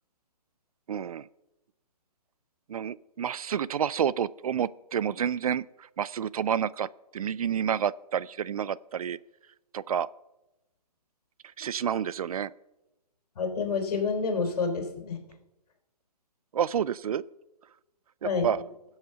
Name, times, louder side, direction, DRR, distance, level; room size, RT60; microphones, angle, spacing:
voice 1, 0.9-1.3 2.7-9.2 9.7-10.1 11.6-12.5 16.5-17.2 18.2-18.7, right 8 dB, 60° right, 21 dB, 0.4 m, -29 dB
voice 2, 13.4-15.2 18.2-18.5, left 4 dB, 60° left, 5 dB, 3.7 m, -28 dB
18.5 x 7.9 x 5.7 m, 0.97 s
hypercardioid pair, 160°, 21 cm